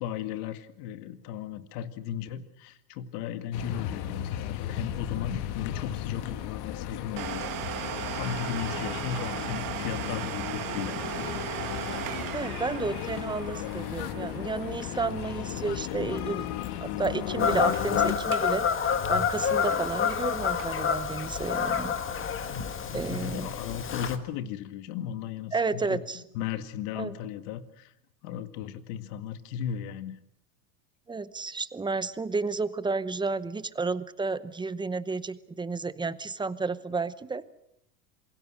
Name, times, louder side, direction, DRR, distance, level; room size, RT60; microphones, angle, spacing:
voice 1, 0.0-11.8 22.6-27.9 28.2-30.2, left 9 dB, 75° left, 10 dB, 2.2 m, -36 dB
sound 1, 3.5-18.2, left 11 dB, 50° left, 1.8 m, -35 dB
Domestic sounds home sounds, 7.2-16.6 16.8-16.9 17.5-17.9 18.2-18.6 18.9-21.0 21.5-21.6 22.2-22.3, right 12 dB, 45° right, 1.8 m, -38 dB
voice 2, 12.3-16.5 16.8-22.0 22.9-23.5 25.5-26.2 27.0-27.2 31.1-37.4, right 4 dB, 10° right, 14 dB, 0.8 m, -31 dB
Fowl / Bird vocalization bird call bird song, 17.4-24.2, left 7 dB, 25° left, 1.8 m, -28 dB
27.0 x 22.5 x 6.5 m, 0.77 s
supercardioid pair, 135°, 48 cm